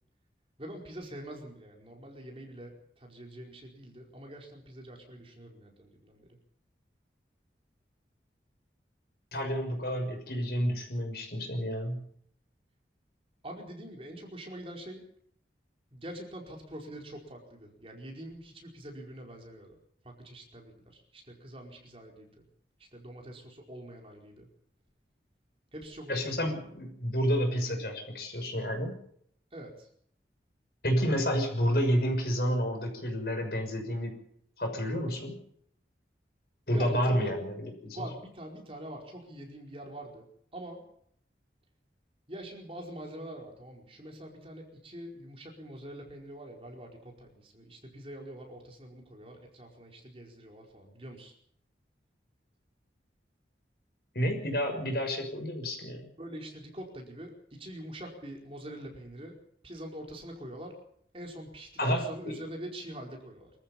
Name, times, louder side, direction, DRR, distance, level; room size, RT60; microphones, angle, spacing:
voice 1, 0.6-6.4 13.4-15.0 15.9-19.8 20.0-22.4 22.8-24.5 25.7-26.7 29.5-29.9 36.7-37.4 37.9-40.3 40.5-40.8 42.3-51.3 56.2-59.4 59.6-60.8 61.1-63.5, right 1 dB, 30° right, 1 dB, 4.8 m, -44 dB
voice 2, 9.3-12.0 26.1-29.0 30.8-34.2 34.6-35.4 36.7-37.5 37.8-38.0 54.1-56.1 61.8-62.3, equal, 60° left, 4 dB, 6.3 m, -30 dB
25.5 x 14.5 x 7.2 m, 0.68 s
head